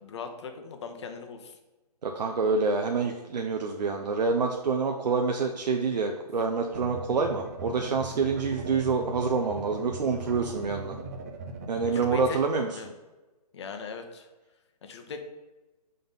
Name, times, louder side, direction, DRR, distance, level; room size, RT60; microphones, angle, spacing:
voice 1, 0.0-1.6 11.8-12.4 12.7-12.9 13.5-14.3 14.8-15.2, left 5 dB, 40° left, 6 dB, 0.8 m, -39 dB
voice 2, 2.0-11.0 11.7-12.7, right 4 dB, 80° right, 3 dB, 0.7 m, -27 dB
sound 1, 6.7-12.3, right 3 dB, 25° right, 0.4 m, -39 dB
5.5 x 3.8 x 5.4 m, 1.1 s
hypercardioid pair, 155°, 21 cm